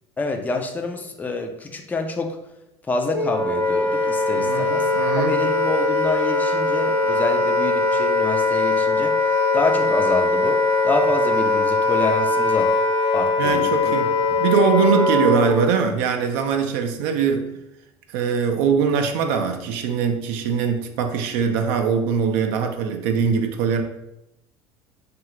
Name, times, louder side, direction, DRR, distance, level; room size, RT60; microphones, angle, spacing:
voice 1, 0.2-2.4 2.9-4.9 5.2-12.7 13.1-13.9 14.3-14.4, left 3 dB, 10° left, 4 dB, 0.4 m, -27 dB
Wind instrument woodwind instrument, 3.1-15.8, left 2 dB, 35° left, 0.7 m, -21 dB
voice 2, 4.4-5.4 13.4-14.1 14.4-17.5 18.1-23.8, right 6 dB, 60° right, 4 dB, 0.4 m, -22 dB
2.7 x 2.4 x 3.0 m, 0.86 s
hypercardioid pair, 70°, 14 cm